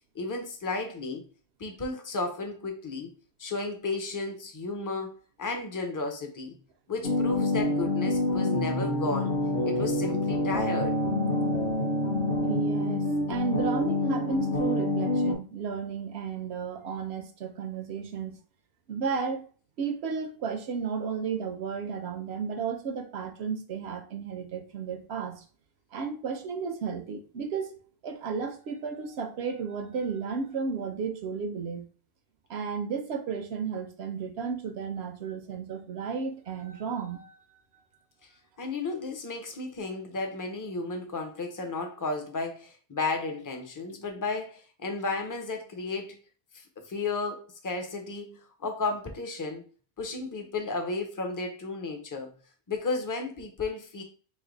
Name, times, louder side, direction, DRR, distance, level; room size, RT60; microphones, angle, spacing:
voice 1, 0.1-1.2 1.6-3.1 3.4-6.5 6.9-9.4 9.6-11.0 38.6-46.2 46.5-49.6 50.0-52.3 52.7-54.0, left 3 dB, 25° left, 3 dB, 0.5 m, -33 dB
sound 1, 7.0-15.3, left 1 dB, 60° left, 1.0 m, -27 dB
voice 2, 12.4-18.3 18.9-19.5 19.8-25.4 25.9-31.8 32.5-37.4, right 5 dB, 75° right, 7 dB, 0.9 m, -33 dB
3.3 x 2.7 x 3.9 m, 0.39 s
omnidirectional pair, 1.1 m